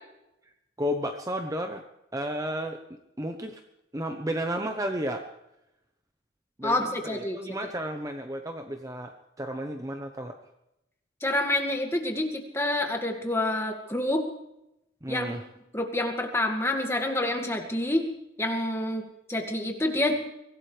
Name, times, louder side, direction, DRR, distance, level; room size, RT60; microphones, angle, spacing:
voice 1, 0.8-1.8 2.1-2.8 3.2-3.6 3.9-5.3 6.6-10.4 15.0-15.4, equal, 15° right, 5 dB, 0.9 m, -32 dB
voice 2, 6.6-7.4 11.2-14.2 15.1-15.4 15.7-18.1 18.4-20.2, left 1 dB, 15° left, 3 dB, 2.0 m, -28 dB
24.0 x 17.0 x 3.4 m, 0.87 s
head